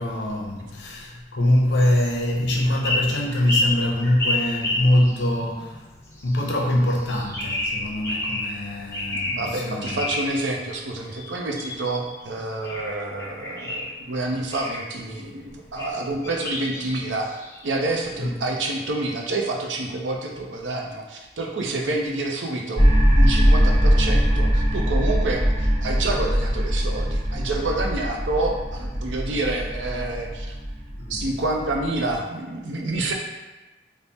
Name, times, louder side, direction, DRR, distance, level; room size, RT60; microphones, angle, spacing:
voice 1, 0.0-10.0 18.2-18.3 29.5-29.6 31.0-31.4, left 1 dB, 75° left, 0 dB, 0.6 m, -24 dB
sound 1, 1.8-2.1 2.7-5.4 6.1-6.6 6.9-8.6 8.9-9.5 9.8-10.3 11.1-12.2 12.6-13.9 14.5-14.9 15.8-15.9 16.2-17.8, left 2 dB, 15° left, 0.5 m, -29 dB
voice 2, 9.1-17.3 17.6-22.8 23.1-30.6 31.1-33.1, right 2 dB, 90° right, 1 dB, 0.5 m, -28 dB
sound 2, 22.8-32.1, equal, 35° right, 1.1 m, -21 dB
3.5 x 2.0 x 4.0 m, 1.1 s
head